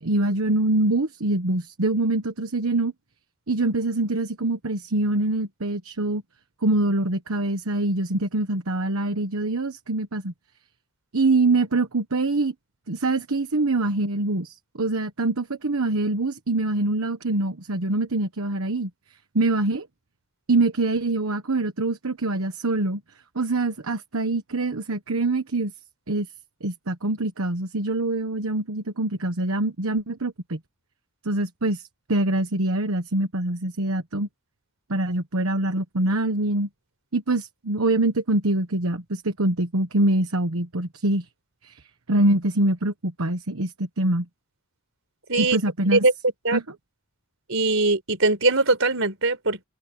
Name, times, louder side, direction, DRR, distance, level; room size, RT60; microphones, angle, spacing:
voice 1, 0.0-2.9 3.5-6.2 6.6-10.3 11.1-12.5 12.9-18.9 19.3-19.9 20.5-23.0 23.3-25.7 26.1-26.3 26.6-30.6 31.2-31.8 32.1-34.3 34.9-36.7 37.1-41.2 41.6-41.8 42.1-44.2 45.4-46.0 46.5-46.6, right 2 dB, 80° right, 1.2 m, -24 dB
voice 2, 47.5-49.6, right 3 dB, 65° right, 5.0 m, -21 dB
open air
head